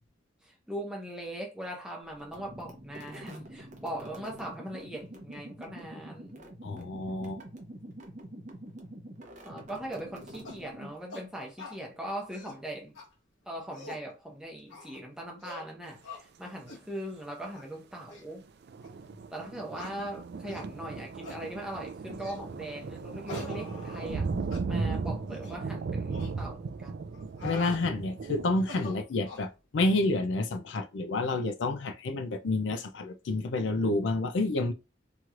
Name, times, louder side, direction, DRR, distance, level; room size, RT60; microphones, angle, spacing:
voice 1, 0.4-6.5 9.4-13.0 13.5-18.4 19.3-24.3 24.7-27.2, right 1 dB, 5° right, 0.9 m, -40 dB
sound 1, 2.2-11.2, right 1 dB, 40° right, 0.7 m, -46 dB
voice 2, 6.6-7.4 27.4-34.7, left 2 dB, 65° left, 0.4 m, -29 dB
sound 2, 10.4-10.6 11.1-11.3 11.6-11.8 12.2-12.6 12.9-13.1 13.5-14.0 14.7-15.0 15.4-15.7 16.0-16.2 16.7-16.8 17.4-17.7 18.1-18.2 18.8-18.9 19.7-19.9 20.5-20.7 21.2-21.4 22.2-22.4 23.3-24.2 24.5-24.6 25.3-25.6 26.1-26.3 27.1-27.8 28.5-29.5, left 3 dB, 85° left, 1.1 m, -44 dB
sound 3, 18.6-28.5, right 4 dB, 55° right, 0.3 m, -36 dB
3.0 x 3.0 x 2.4 m
head